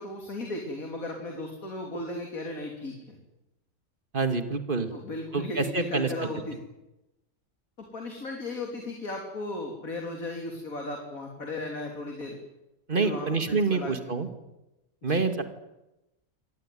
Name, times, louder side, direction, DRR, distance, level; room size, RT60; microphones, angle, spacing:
voice 1, 0.0-3.2 4.9-6.6 7.8-12.4 13.0-13.9 15.0-15.2, left 2 dB, 85° left, 2 dB, 3.8 m, -36 dB
voice 2, 4.1-4.9 5.3-6.3 12.9-14.3 15.0-15.4, right 4 dB, 40° right, 8 dB, 2.4 m, -27 dB
25.5 x 18.5 x 9.3 m, 0.96 s
omnidirectional pair, 1.4 m